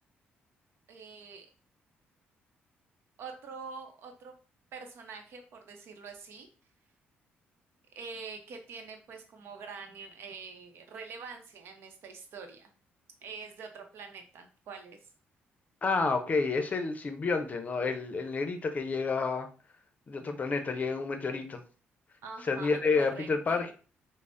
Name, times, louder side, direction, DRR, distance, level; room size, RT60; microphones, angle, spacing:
voice 1, 0.9-1.5 3.2-4.3 4.7-6.5 7.9-12.7 13.2-15.0 22.2-23.7, right 5 dB, 70° right, 5 dB, 0.7 m, -45 dB
voice 2, 15.8-19.5 20.1-21.6 22.5-23.7, left 4 dB, 40° left, 7 dB, 0.6 m, -29 dB
5.2 x 2.1 x 2.5 m, 0.37 s
cardioid pair, 80°, 4 cm